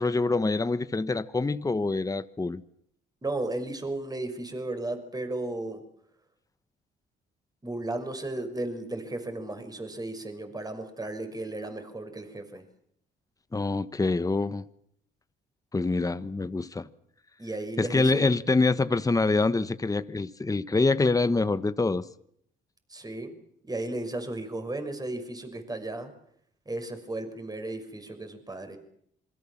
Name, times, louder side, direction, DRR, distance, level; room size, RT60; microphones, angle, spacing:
voice 1, 0.0-2.6 13.5-14.6 15.7-16.9 17.8-22.0, left 3 dB, 15° left, 1.2 m, -25 dB
voice 2, 3.2-5.8 7.6-12.6 17.4-18.4 22.9-23.3 23.6-26.1 26.7-28.8, right 2 dB, 20° right, 6.0 m, -34 dB
27.5 x 23.5 x 7.4 m
cardioid pair, 90°, 20 cm